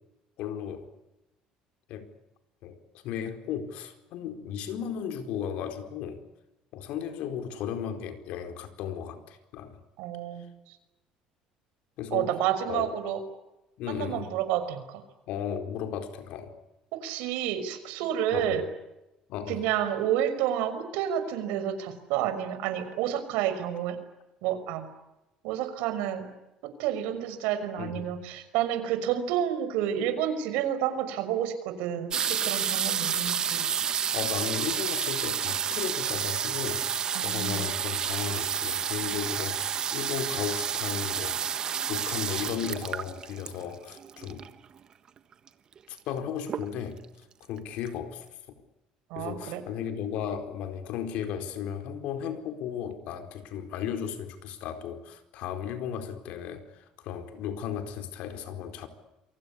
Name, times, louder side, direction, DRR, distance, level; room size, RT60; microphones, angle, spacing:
voice 1, 0.4-0.9 1.9-2.1 2.6-2.8 3.0-6.2 6.7-9.8 12.0-12.4 12.6-12.9 13.8-14.3 15.3-16.5 18.3-18.6 19.3-19.6 27.8-28.1 34.1-36.9 37.2-41.4 41.9-44.5 45.9-47.0 47.5-48.3 49.1-56.7 57.0-58.9, left 8 dB, 65° left, 4.4 m, -35 dB
voice 2, 10.0-10.5 12.1-13.2 13.9-15.0 16.9-18.6 19.5-24.0 24.4-24.9 25.4-26.3 26.8-33.7 37.1-37.6 49.1-49.6, right 10 dB, 90° right, 5.7 m, -30 dB
sound 1, 32.1-44.6 45.5-45.6 45.8-46.2 46.5-47.0 47.6-47.7 47.9-48.0, right 8 dB, 35° right, 1.4 m, -30 dB
29.0 x 24.0 x 8.6 m
cardioid pair, 150°, 2 cm